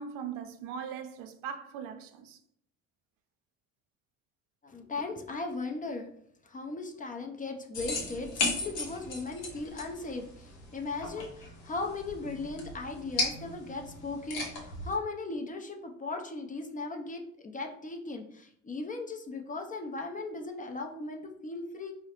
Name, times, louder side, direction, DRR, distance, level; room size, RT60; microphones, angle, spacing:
voice 1, 0.0-2.4, right 7 dB, 70° right, 0.5 m, -40 dB
voice 2, 4.6-6.1 6.4-21.9, left 3 dB, 25° left, 0.5 m, -37 dB
sound 1, 7.7-14.9, left 2 dB, 85° left, 0.8 m, -36 dB
3.7 x 2.1 x 2.9 m
hypercardioid pair, 60°, 35 cm